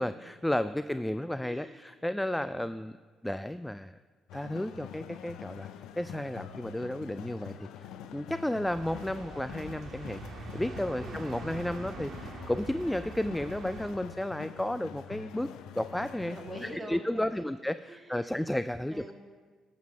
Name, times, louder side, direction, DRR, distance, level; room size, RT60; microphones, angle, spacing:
voice 1, 0.0-3.0 3.2-4.0 4.3-5.7 5.9-10.2 10.5-16.4 16.9-18.9, left 1 dB, 5° left, 13 dB, 0.3 m, -33 dB
voice 2, 1.4-1.8 2.3-2.7 11.0-11.2 16.3-17.5 17.9-18.4 18.9-19.1, right 1 dB, 15° right, 1 dB, 2.3 m, -45 dB
sound 1, 4.3-16.8, left 9 dB, 70° left, 0.6 m, -45 dB
sound 2, 8.6-13.9, right 3 dB, 50° right, 2.0 m, -44 dB
12.5 x 7.6 x 5.7 m, 1.5 s
hypercardioid pair, 50°, 0 cm